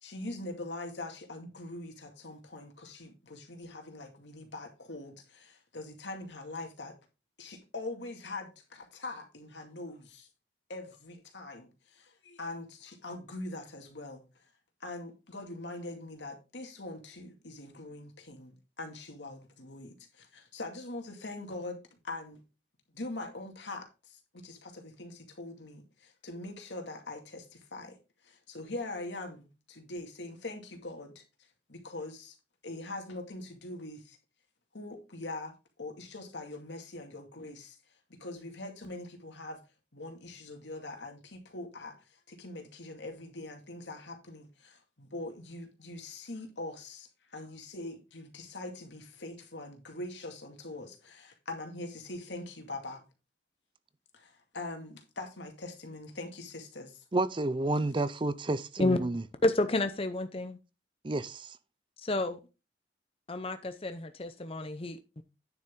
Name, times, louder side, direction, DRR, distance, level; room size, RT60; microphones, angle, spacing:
voice 1, 0.0-7.0 7.4-10.3 10.7-14.5 14.8-22.4 22.9-28.0 28.2-32.4 32.6-34.2 34.7-37.8 38.1-39.6 39.9-53.0 54.1-57.0, left 2 dB, 85° left, 2.3 m, -43 dB
voice 2, 57.1-59.2 61.0-61.6, right 2 dB, 25° right, 0.5 m, -30 dB
voice 3, 59.4-60.6 62.0-62.4 63.3-65.2, left 2 dB, 30° left, 0.7 m, -30 dB
9.7 x 7.0 x 3.7 m
head